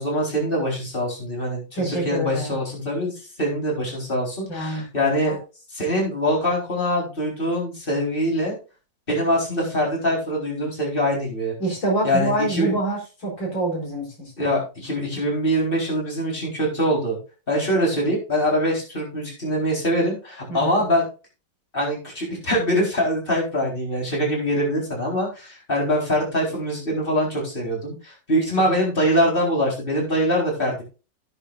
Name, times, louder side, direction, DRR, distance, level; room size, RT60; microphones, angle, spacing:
voice 1, 0.0-3.1 3.4-5.4 5.7-8.6 9.1-11.6 12.0-12.7 14.4-17.2 17.5-21.0 21.7-30.8, equal, 25° left, -1 dB, 4.4 m, -23 dB
voice 2, 1.7-2.6 4.5-4.8 5.3-5.4 11.6-14.3 20.5-20.8, right 2 dB, 90° left, 0 dB, 5.1 m, -26 dB
16.0 x 7.9 x 2.5 m, 0.32 s
omnidirectional pair, 2.0 m